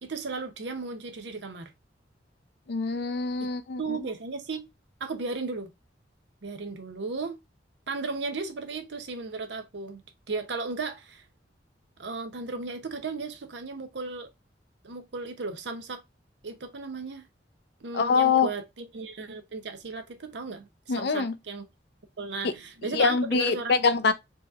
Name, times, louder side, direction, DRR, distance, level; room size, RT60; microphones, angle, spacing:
voice 1, 0.0-1.7 3.4-3.5 3.8-4.6 5.0-5.7 6.4-7.4 7.9-10.0 10.3-11.2 12.0-14.3 14.8-16.0 16.4-17.3 17.8-21.6 22.2-23.7, right 4 dB, 70° right, 0.6 m, -35 dB
voice 2, 2.7-4.0 17.9-18.5 20.9-21.3 22.4-22.5 22.9-24.1, left 5 dB, 65° left, 0.5 m, -24 dB
4.6 x 2.8 x 2.4 m
head